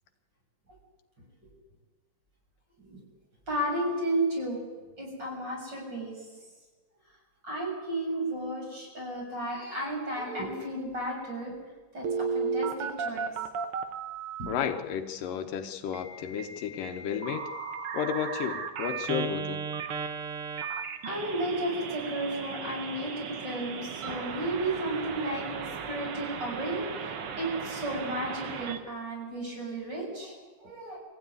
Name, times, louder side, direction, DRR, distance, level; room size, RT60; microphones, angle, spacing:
voice 1, 3.5-4.6 5.0-6.3 7.4-11.5 11.9-13.3 14.4-14.5 21.0-31.0, right 1 dB, 30° right, -2 dB, 7.4 m, -33 dB
Telephone, 12.0-14.5 15.9-28.8, right 5 dB, 55° right, 1.7 m, -35 dB
voice 2, 14.5-17.5 17.9-19.6, left 8 dB, 80° left, 6 dB, 2.7 m, -32 dB
23.0 x 15.5 x 9.6 m, 1.3 s
omnidirectional pair, 3.9 m